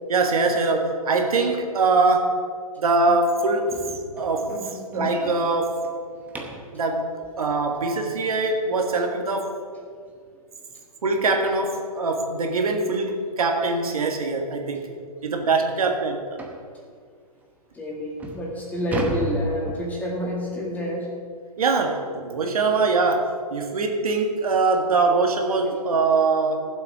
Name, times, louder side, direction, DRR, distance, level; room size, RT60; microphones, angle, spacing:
voice 1, 0.1-2.4 2.8-3.8 4.1-4.6 4.9-5.9 6.7-9.6 11.0-14.9 15.2-16.4 21.6-26.7, right 3 dB, 65° right, 3 dB, 1.8 m, -23 dB
sound 1, 3.7-6.8 9.6-9.7 10.2-10.4 10.7-10.8 11.3-11.4 12.5-12.6 13.0-13.2 13.8-13.9 14.3-14.4 14.9-15.0 16.4-16.7 17.4-17.5 18.0-20.3, right 1 dB, 10° right, 0.9 m, -34 dB
voice 2, 17.8-21.1, equal, 10° left, -2 dB, 1.9 m, -28 dB
14.5 x 7.6 x 6.1 m, 2.1 s
hypercardioid pair, 145°, 20 cm